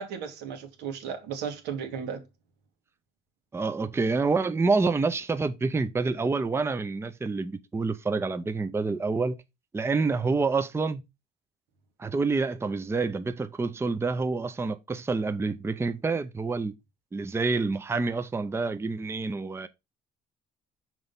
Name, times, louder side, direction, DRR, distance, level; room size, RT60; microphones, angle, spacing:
voice 1, 0.0-2.2, right 7 dB, 85° right, 1.8 m, -35 dB
voice 2, 3.5-9.3 9.7-11.0 12.0-16.7 17.1-19.7, right 4 dB, 15° right, 0.6 m, -27 dB
6.2 x 3.9 x 5.3 m
cardioid pair, 110°, 17 cm